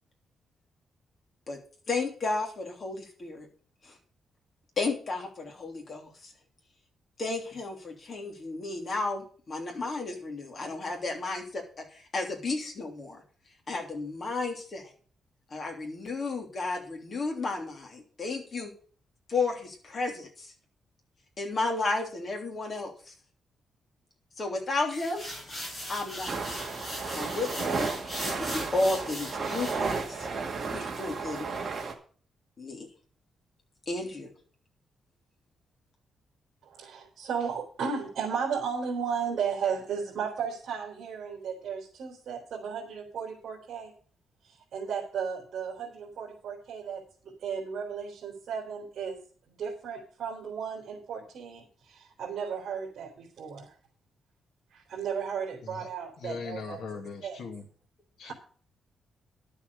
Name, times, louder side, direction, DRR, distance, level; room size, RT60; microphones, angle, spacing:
voice 1, 1.9-3.5 3.8-3.9 4.8-6.3 7.2-13.2 13.7-14.9 15.5-18.7 19.3-20.5 21.4-23.1 24.4-25.3 25.9-26.5 27.1-27.9 28.2-30.3 30.7-31.5 32.6-32.9 33.9-34.3, left 3 dB, 35° left, 3.2 m, -33 dB
sound 1, 24.9-30.1, equal, 20° left, 5.9 m, -39 dB
sound 2, 26.3-31.9, right 4 dB, 35° right, 2.1 m, -33 dB
voice 2, 36.7-43.9 44.7-49.2 49.6-53.7 54.7-56.8 57.2-57.4 58.2-58.3, right 6 dB, 60° right, 3.3 m, -34 dB
voice 3, 56.2-57.7 58.2-58.3, left 4 dB, 60° left, 2.2 m, -39 dB
11.5 x 7.2 x 6.7 m
wide cardioid pair, 170°, 0 cm